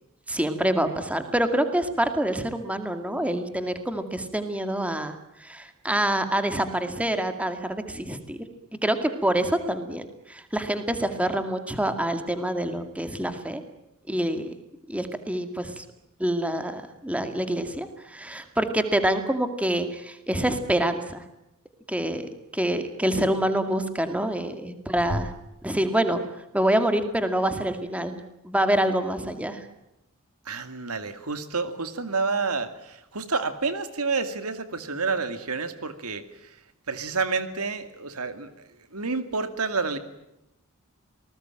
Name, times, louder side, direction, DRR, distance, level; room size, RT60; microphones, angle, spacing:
voice 1, 0.3-8.4 8.8-10.0 10.3-13.6 14.1-14.5 14.9-15.8 16.2-21.2 21.9-25.3 25.6-26.2 26.5-29.6, right 1 dB, 5° right, 8 dB, 2.2 m, -26 dB
voice 2, 30.5-36.6 36.9-40.0, right 4 dB, 85° right, 10 dB, 2.4 m, -29 dB
28.0 x 20.0 x 9.0 m, 0.87 s
head